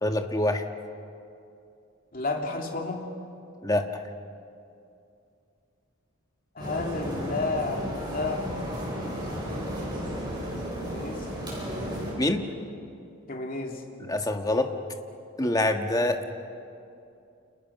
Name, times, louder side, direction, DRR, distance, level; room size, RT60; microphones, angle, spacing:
voice 1, 0.0-0.6 3.6-3.8 12.2-12.4 14.1-14.7 15.4-16.2, left 1 dB, 15° left, 5 dB, 1.5 m, -25 dB
voice 2, 2.1-3.0 6.5-8.6 10.8-11.3 13.3-13.8, left 3 dB, 45° left, 1 dB, 2.9 m, -31 dB
sound 1, 6.6-12.1, equal, 20° right, 7.9 m, -33 dB
30.0 x 29.5 x 6.0 m, 2.6 s
head